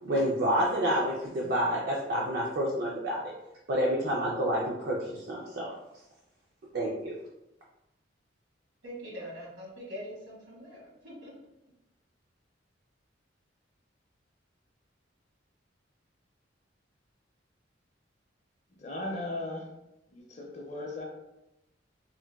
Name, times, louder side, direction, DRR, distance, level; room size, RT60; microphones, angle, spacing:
voice 1, 0.0-3.3 3.7-5.7 6.7-7.1, equal, 55° right, -4 dB, 0.4 m, -29 dB
voice 2, 8.8-11.3, equal, 75° right, -4 dB, 1.2 m, -43 dB
voice 3, 18.8-19.7 20.1-21.1, left 2 dB, 40° left, -1 dB, 0.5 m, -37 dB
3.8 x 2.1 x 2.2 m, 0.91 s
head